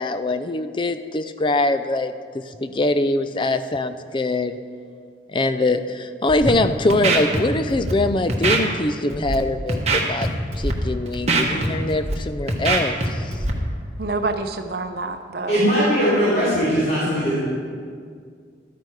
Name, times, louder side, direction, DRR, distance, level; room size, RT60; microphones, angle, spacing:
voice 1, 0.0-4.5 5.3-10.3 10.6-13.3, left 2 dB, 30° left, 11 dB, 0.4 m, -23 dB
Scratching (performance technique), 6.3-6.5 6.9-7.4 7.7-7.9 8.3-8.6 9.1-9.3 9.7-10.3 10.5-10.7 11.1-12.1 12.5-13.1 13.3-13.5, right 3 dB, 40° right, 1.2 m, -21 dB
voice 2, 14.0-15.6, right 3 dB, 60° right, 6 dB, 0.7 m, -27 dB
voice 3, 15.5-17.4, equal, 60° left, -12 dB, 3.4 m, -19 dB
12.0 x 9.1 x 4.7 m, 2.1 s
head